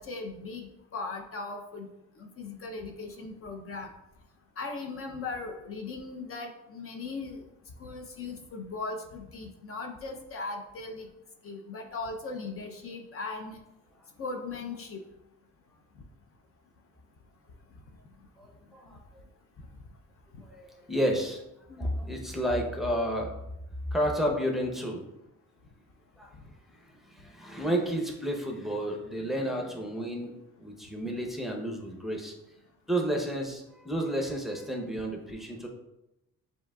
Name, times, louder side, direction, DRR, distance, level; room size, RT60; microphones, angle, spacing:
voice 1, 0.0-1.9 2.2-3.9 4.6-7.4 7.8-11.1 11.4-13.6 14.2-15.0 21.7-21.9, left 3 dB, 45° left, 3 dB, 0.6 m, -38 dB
voice 2, 18.4-19.0 20.4-21.4 21.8-23.3 23.9-25.0 26.2-26.3 26.7-30.3 30.6-32.3 32.9-35.7, equal, ahead, 0 dB, 0.8 m, -31 dB
7.0 x 2.8 x 2.3 m, 0.91 s
cardioid pair, 90°, 30 cm